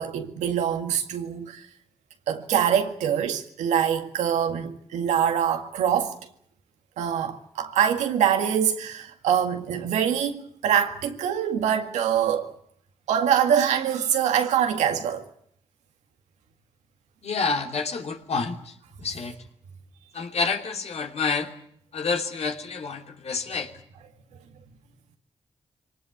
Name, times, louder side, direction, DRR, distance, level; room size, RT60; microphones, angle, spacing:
voice 1, 0.0-1.7 2.3-6.2 7.0-12.5 13.1-15.3, right 9 dB, 90° right, 2.0 m, -24 dB
voice 2, 17.2-19.3 20.1-21.5 21.9-23.7, left 4 dB, 65° left, 3.1 m, -28 dB
24.0 x 19.0 x 9.3 m
supercardioid pair, 40°, 12 cm